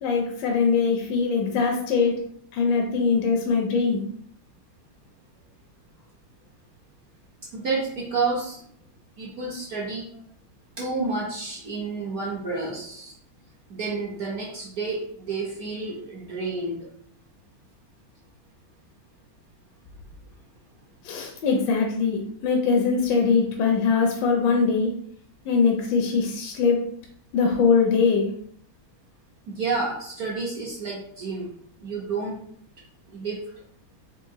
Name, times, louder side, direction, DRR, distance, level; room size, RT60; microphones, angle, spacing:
voice 1, 0.0-2.2 2.5-4.0 21.0-24.9 25.4-26.8 27.3-28.3, left 5 dB, 75° left, 1 dB, 1.2 m, -22 dB
voice 2, 7.5-8.6 9.2-10.1 10.8-13.1 13.7-16.8 29.5-31.5 31.8-32.4 33.1-33.4, right 3 dB, 60° right, -5 dB, 1.0 m, -30 dB
4.5 x 2.4 x 2.7 m, 0.64 s
omnidirectional pair, 2.1 m